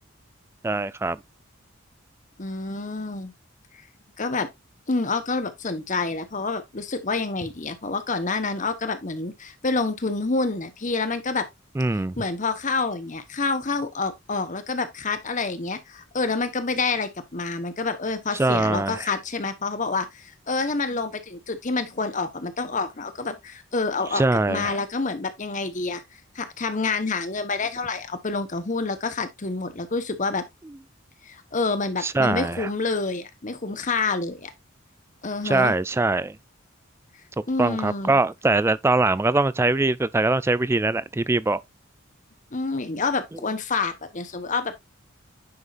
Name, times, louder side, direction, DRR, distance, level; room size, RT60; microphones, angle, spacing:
voice 1, 0.6-1.2 11.8-12.2 18.4-19.0 24.1-24.7 32.0-32.7 35.4-36.4 37.6-41.6, right 2 dB, 10° right, 0.3 m, -22 dB
voice 2, 2.4-3.3 4.2-4.5 4.9-11.5 11.9-26.0 26.3-30.5 31.2-34.5 35.2-35.7 37.5-38.2 42.5-44.7, left 3 dB, 40° left, 1.1 m, -28 dB
9.7 x 5.4 x 2.5 m
head